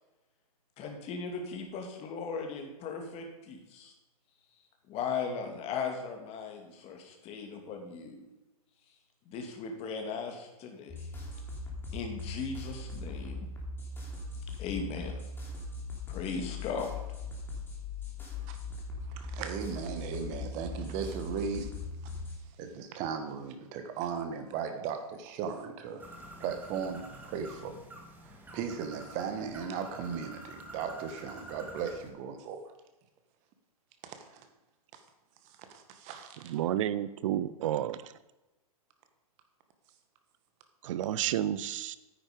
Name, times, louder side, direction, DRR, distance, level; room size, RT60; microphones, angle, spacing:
voice 1, 0.8-3.9 4.9-8.2 9.3-11.1 11.9-13.5 14.6-15.2 16.1-16.9, left 5 dB, 30° left, 3 dB, 2.5 m, -37 dB
sound 1, 10.9-22.4, left 3 dB, 10° left, 3.2 m, -40 dB
voice 2, 19.1-21.8 22.6-26.0 26.4-27.8 28.2-32.7 34.0-34.4 34.9-35.0 35.4-36.4, right 6 dB, 35° right, 7 dB, 1.8 m, -37 dB
Bird, 26.0-32.1, right 1 dB, 10° right, 1.9 m, -48 dB
voice 3, 36.4-38.1 40.8-42.0, right 11 dB, 55° right, 16 dB, 0.7 m, -31 dB
9.9 x 8.9 x 5.1 m, 1.0 s
hypercardioid pair, 125°, 20 cm